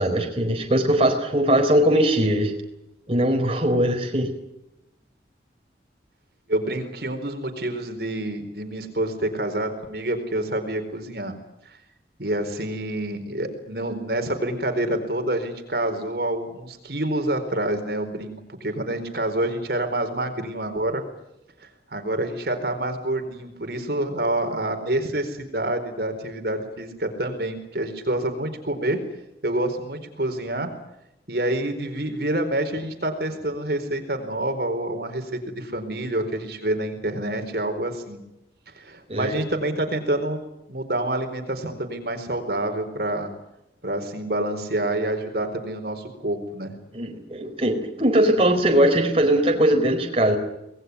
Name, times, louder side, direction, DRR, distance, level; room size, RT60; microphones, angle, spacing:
voice 1, 0.0-2.5 3.1-4.3 39.1-39.3 46.9-50.4, right 1 dB, 30° right, 3 dB, 4.4 m, -20 dB
voice 2, 6.5-11.3 11.6-11.8 12.2-18.3 18.6-21.0 21.9-29.0 29.4-30.7 31.3-38.2 38.7-40.4 40.7-43.3 43.8-46.7, right 1 dB, 60° right, 6 dB, 4.4 m, -27 dB
26.0 x 20.5 x 9.6 m, 0.88 s
head